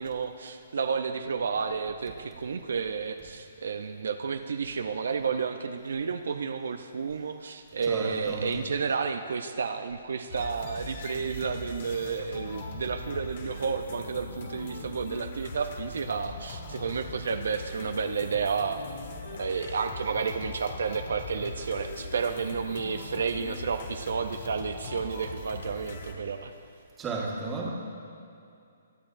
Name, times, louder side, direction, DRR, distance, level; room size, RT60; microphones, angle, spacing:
voice 1, 0.0-18.8 19.3-26.5, right 5 dB, 75° right, 7 dB, 0.6 m, -31 dB
voice 2, 7.8-8.5 27.0-27.7, right 3 dB, 15° right, -4 dB, 1.6 m, -33 dB
sound 1, 10.3-26.1, left 3 dB, 50° left, 1.3 m, -40 dB
22.5 x 8.4 x 2.6 m, 2.5 s
hypercardioid pair, 160°, 0 cm